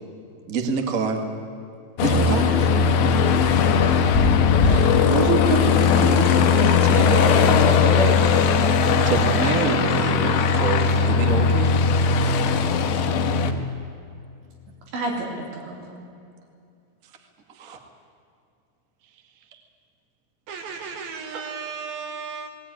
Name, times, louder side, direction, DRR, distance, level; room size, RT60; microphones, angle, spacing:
voice 1, 0.5-1.2 2.0-2.7 5.9-8.2 9.0-11.9 17.5-17.8 21.3-21.4, right 4 dB, 45° right, 4 dB, 1.1 m, -26 dB
Aircraft, 2.0-13.5, left 5 dB, 75° left, 3.5 m, -19 dB
voice 2, 4.6-6.8 12.2-12.7 14.9-16.0, right 3 dB, 80° right, 0 dB, 5.8 m, -28 dB
voice 3, 20.5-22.5, right 5 dB, 60° right, 5 dB, 3.3 m, -34 dB
20.0 x 18.5 x 10.0 m, 2.5 s
omnidirectional pair, 5.1 m